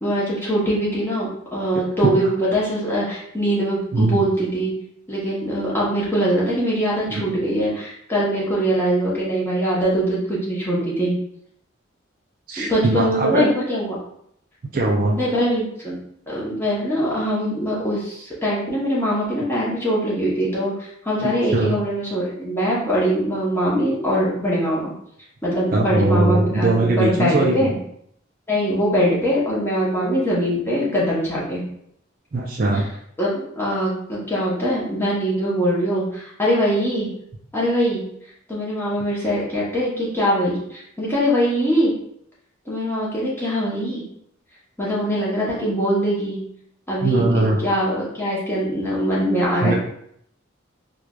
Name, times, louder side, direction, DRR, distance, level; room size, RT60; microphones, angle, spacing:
voice 1, 0.0-4.7 5.1-11.1 12.6-14.0 15.2-16.0 16.3-24.9 25.4-27.8 28.5-31.6 32.7-32.8 33.2-37.2 37.5-38.1 38.5-41.9 42.7-44.0 44.8-46.5 46.9-49.8, equal, 10° left, -7 dB, 0.9 m, -22 dB
voice 2, 12.5-13.5 14.7-15.2 21.2-21.8 25.7-27.7 32.3-32.9 47.0-47.6 49.6-49.7, right 2 dB, 45° right, 0 dB, 0.4 m, -20 dB
4.5 x 2.3 x 2.4 m, 0.70 s
head